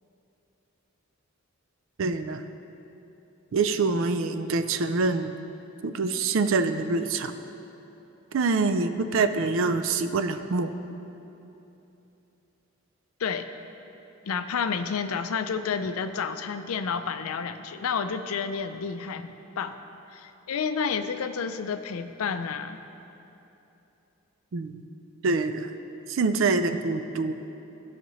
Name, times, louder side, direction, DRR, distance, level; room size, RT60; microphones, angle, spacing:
voice 1, 2.0-2.4 3.5-5.3 5.8-7.3 8.3-10.7 24.5-24.8 25.2-25.7 26.1-27.3, right 3 dB, 65° right, 10 dB, 0.4 m, -25 dB
voice 2, 14.3-19.8 20.1-22.8, left 6 dB, 80° left, 9 dB, 0.4 m, -30 dB
15.0 x 5.9 x 3.1 m, 3.0 s
head